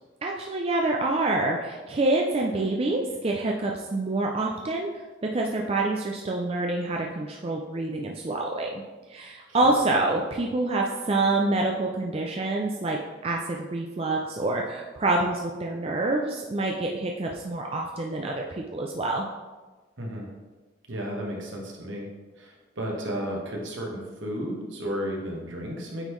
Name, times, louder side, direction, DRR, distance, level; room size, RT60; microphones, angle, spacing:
voice 1, 0.2-8.8 9.1-18.4 18.7-19.3, right 2 dB, 30° right, 0 dB, 0.4 m, -27 dB
voice 2, 9.5-9.8 20.0-20.3 20.9-22.1 22.4-26.1, equal, 70° right, -1 dB, 1.3 m, -33 dB
8.8 x 3.8 x 3.1 m, 1.3 s
head